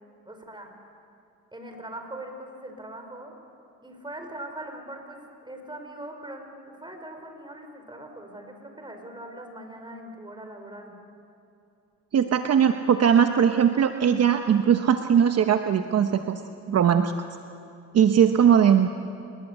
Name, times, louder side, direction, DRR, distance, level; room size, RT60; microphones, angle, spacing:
voice 1, 0.3-0.7 1.5-3.4 3.8-11.0, right 1 dB, 15° right, 4 dB, 5.3 m, -41 dB
voice 2, 12.1-16.4 16.7-17.1 17.9-18.9, right 8 dB, 55° right, 7 dB, 1.1 m, -20 dB
28.5 x 20.5 x 8.4 m, 2.8 s
cardioid pair, 90°, 30 cm